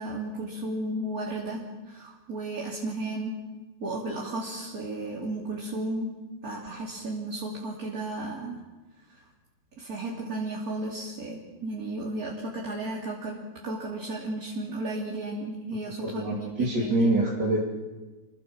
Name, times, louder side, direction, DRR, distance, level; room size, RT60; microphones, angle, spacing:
voice 1, 0.0-1.6 1.9-3.4 3.8-6.1 6.4-8.6 9.1-9.2 9.8-17.2, right 2 dB, 55° right, -3 dB, 3.5 m, -34 dB
voice 2, 16.0-17.7, right 1 dB, 75° right, -4 dB, 3.9 m, -25 dB
29.5 x 23.0 x 6.2 m, 1.2 s
omnidirectional pair, 1.8 m